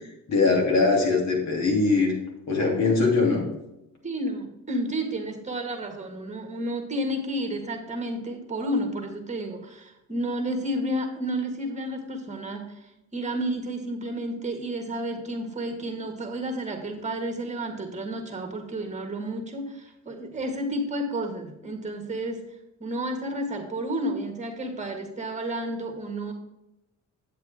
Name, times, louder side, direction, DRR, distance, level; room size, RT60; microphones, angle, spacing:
voice 1, 0.3-2.1 2.5-3.4, left 3 dB, 60° left, -1 dB, 3.0 m, -21 dB
voice 2, 4.0-22.4 22.8-26.3, right 1 dB, 25° right, 4 dB, 1.8 m, -31 dB
8.4 x 7.9 x 3.6 m, 0.90 s
cardioid pair, 90°, 30 cm